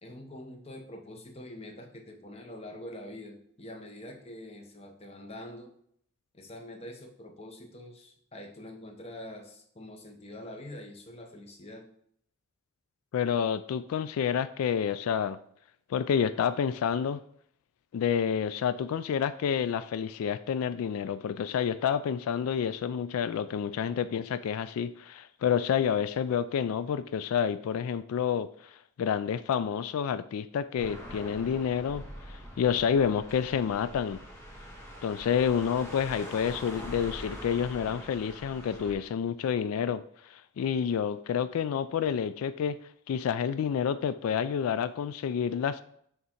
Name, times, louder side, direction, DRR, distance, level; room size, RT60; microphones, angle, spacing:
voice 1, 0.0-5.7 6.3-11.9, left 1 dB, 30° left, 4 dB, 0.8 m, -45 dB
voice 2, 13.1-15.4 15.9-17.2 17.9-34.2 35.0-42.8 43.1-45.8, left 7 dB, 90° left, 15 dB, 0.3 m, -29 dB
sound 1, 30.8-38.9, equal, 10° left, 1.5 m, -44 dB
6.7 x 3.7 x 4.4 m, 0.67 s
head